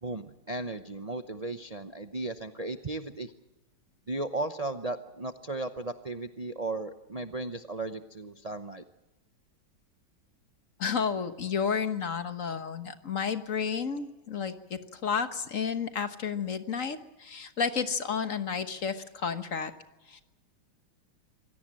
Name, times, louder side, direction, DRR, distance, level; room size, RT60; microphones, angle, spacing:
voice 1, 0.0-3.3 4.1-8.8, right 2 dB, 85° right, 8 dB, 0.3 m, -35 dB
voice 2, 10.8-19.7 20.1-20.2, left 6 dB, 45° left, 9 dB, 1.4 m, -31 dB
26.0 x 17.5 x 7.5 m, 0.98 s
omnidirectional pair, 2.2 m